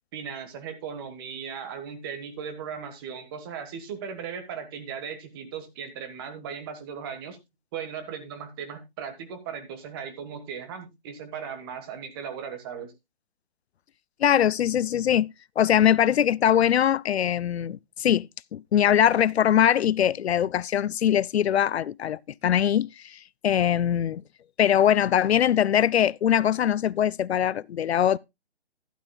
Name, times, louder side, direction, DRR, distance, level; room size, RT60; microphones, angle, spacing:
voice 1, 0.1-7.4 7.7-12.9, right 7 dB, 20° right, 1.3 m, -37 dB
voice 2, 14.2-15.3 15.6-24.2 24.6-28.2, left 10 dB, 85° left, 0.5 m, -22 dB
12.5 x 11.0 x 2.2 m
hypercardioid pair, 160°, 32 cm